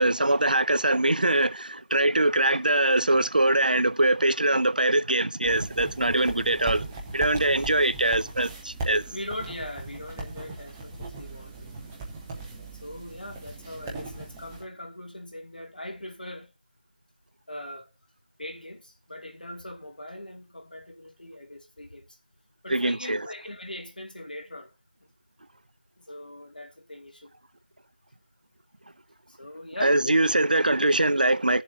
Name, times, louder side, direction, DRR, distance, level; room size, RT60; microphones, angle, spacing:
voice 1, 0.0-6.8 7.1-9.0 22.7-23.3 29.8-31.6, right 2 dB, 65° right, 0.6 m, -23 dB
sound 1, 5.4-14.6, right 3 dB, 5° right, 0.6 m, -38 dB
voice 2, 9.1-11.7 12.7-16.5 17.5-17.9 18.4-22.2 22.6-24.7 26.0-27.3 29.3-29.9, left 1 dB, 65° left, 2.5 m, -40 dB
18.0 x 7.2 x 2.8 m
figure-of-eight pair, 170°, 5 cm